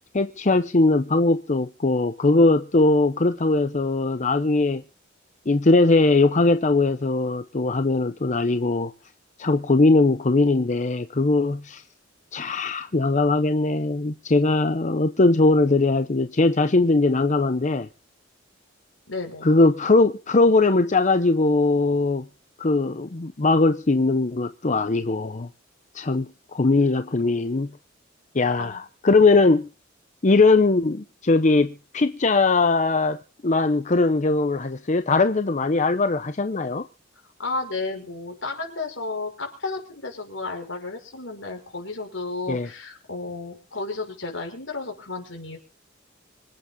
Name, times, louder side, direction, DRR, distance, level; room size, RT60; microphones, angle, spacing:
voice 1, 0.1-4.8 5.5-8.9 9.4-11.8 12.3-17.9 19.4-22.2 22.6-25.5 25.9-27.7 28.3-29.7 30.2-36.8 42.5-42.7, left 3 dB, 40° left, 0.7 m, -20 dB
voice 2, 19.1-19.5 28.6-28.8 37.4-45.6, left 3 dB, 75° left, 5.7 m, -32 dB
26.0 x 8.8 x 3.8 m
head